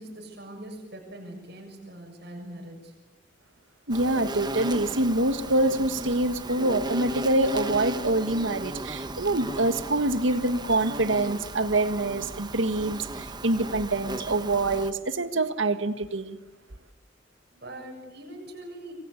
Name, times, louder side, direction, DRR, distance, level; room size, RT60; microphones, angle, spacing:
voice 1, 0.0-2.9 17.5-18.9, right 1 dB, 60° right, 1 dB, 7.0 m, -42 dB
Insect, 3.9-14.9, right 2 dB, 20° right, 1.2 m, -36 dB
voice 2, 3.9-16.4, right 2 dB, 80° right, 10 dB, 1.7 m, -25 dB
27.5 x 23.5 x 8.5 m, 1.1 s
head